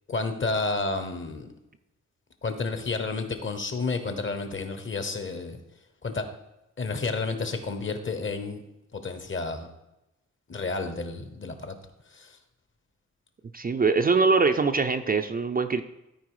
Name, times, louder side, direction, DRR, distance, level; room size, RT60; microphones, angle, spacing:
voice 1, 0.1-1.5 2.4-5.6 6.0-6.3 6.8-8.6 8.9-9.7 10.5-11.8 12.1-12.4, left 3 dB, 40° left, 8 dB, 1.0 m, -31 dB
voice 2, 13.5-15.8, right 4 dB, 30° right, 7 dB, 0.4 m, -23 dB
13.5 x 4.6 x 4.8 m, 0.92 s
wide cardioid pair, 140°, 29 cm